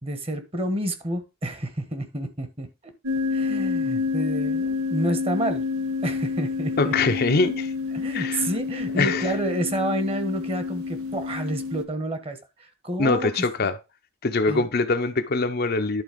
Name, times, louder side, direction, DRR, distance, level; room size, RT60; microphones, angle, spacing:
voice 1, 0.0-2.7 3.3-5.6 6.0-6.9 7.9-13.3 13.6-13.7 14.5-14.7, right 1 dB, 25° right, 1.3 m, -29 dB
sound 1, 3.0-11.8, left 4 dB, 90° right, 1.1 m, -28 dB
voice 2, 6.8-7.7 8.1-8.5 8.9-9.3 13.0-13.7 14.2-16.0, left 3 dB, 45° left, 0.7 m, -23 dB
11.0 x 4.0 x 5.1 m
head